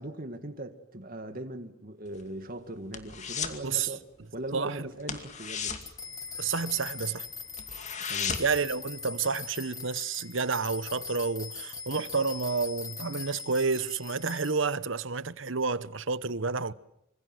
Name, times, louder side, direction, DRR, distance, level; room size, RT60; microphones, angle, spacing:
voice 1, 0.0-4.0 4.3-5.8 8.1-8.4, right 1 dB, 45° right, 2.1 m, -39 dB
sound 1, 2.1-3.7 3.9-4.2 4.5-4.6 5.0-6.9 7.2-7.3 7.6-8.7 9.0-9.1, left 6 dB, 35° left, 2.5 m, -35 dB
voice 2, 3.6-3.9 4.5-4.9 6.4-7.3 8.4-16.7, right 4 dB, 65° right, 1.0 m, -30 dB
sound 2, 5.8-14.5, left 5 dB, 15° left, 1.5 m, -42 dB
26.5 x 26.0 x 7.9 m
head